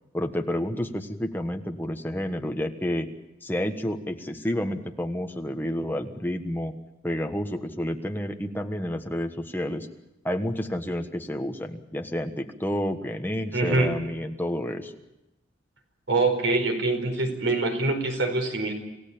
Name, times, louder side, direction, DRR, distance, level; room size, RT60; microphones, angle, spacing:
voice 1, 0.1-3.1 3.4-6.7 7.0-9.9 10.2-14.9, left 1 dB, 10° left, 5 dB, 1.4 m, -30 dB
voice 2, 13.5-14.0 16.1-18.7, right 2 dB, 80° right, 5 dB, 4.6 m, -24 dB
28.0 x 16.0 x 8.6 m, 0.97 s
head